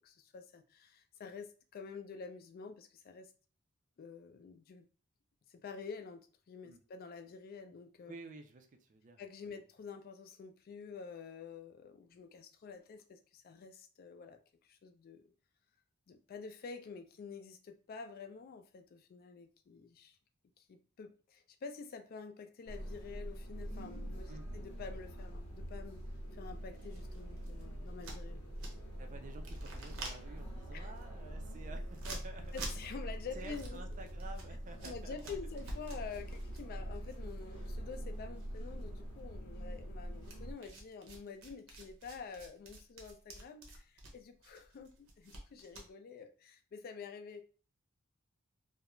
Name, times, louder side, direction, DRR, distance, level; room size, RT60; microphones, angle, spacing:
voice 1, 0.0-3.3 4.0-4.9 5.5-8.1 9.2-15.2 16.1-20.2 20.6-26.0 26.3-28.4 30.7-30.9 32.5-33.8 34.8-47.4, left 5 dB, 45° left, 7 dB, 0.3 m, -48 dB
voice 2, 8.0-9.2 9.4-9.6 24.3-24.5 29.0-32.6 33.3-35.4, right 3 dB, 35° right, 5 dB, 0.4 m, -51 dB
sound 1, 22.7-40.5, equal, 75° left, 0.7 m, -44 dB
sound 2, 26.8-29.0 29.3-38.1 38.4-39.2 40.2-45.9, right 2 dB, 70° right, 0.7 m, -49 dB
2.3 x 2.0 x 2.9 m, 0.39 s
head